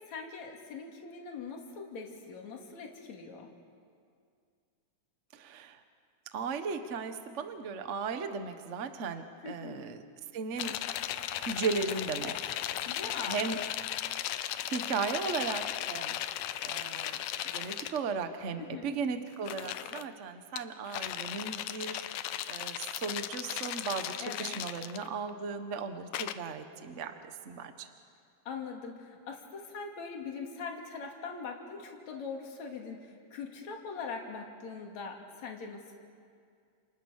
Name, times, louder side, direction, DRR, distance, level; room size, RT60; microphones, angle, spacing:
voice 1, 0.1-3.5 9.4-9.8 12.9-13.4 18.6-18.9 24.2-24.8 28.5-36.0, left 5 dB, 60° left, 1 dB, 3.8 m, -42 dB
voice 2, 5.3-5.8 6.3-10.0 10.3-10.8 11.4-12.5 13.3-13.6 14.7-16.2 16.6-17.2 17.5-22.0 22.5-27.2 27.4-27.9, right 5 dB, 55° right, 8 dB, 0.7 m, -36 dB
sound 1, 10.6-18.0 19.3-20.1 20.6-25.3 26.1-26.3, left 12 dB, 80° left, 2.3 m, -36 dB
30.0 x 29.0 x 6.6 m, 2.3 s
omnidirectional pair, 3.8 m